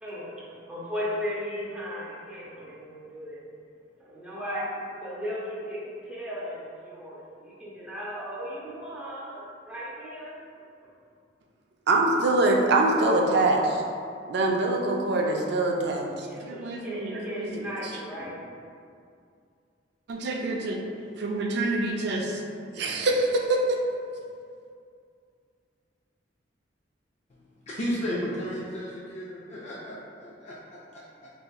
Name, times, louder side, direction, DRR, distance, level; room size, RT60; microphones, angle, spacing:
voice 1, 0.0-3.4 4.0-10.4 16.2-18.4, equal, 5° right, -8 dB, 0.6 m, -36 dB
voice 2, 11.9-13.8 14.3-17.5 20.1-20.8 21.2-22.4 22.8-23.8, right 2 dB, 60° right, 0 dB, 0.4 m, -25 dB
voice 3, 27.7-31.3, equal, 35° left, -7 dB, 0.4 m, -34 dB
4.1 x 2.6 x 2.2 m, 2.3 s
head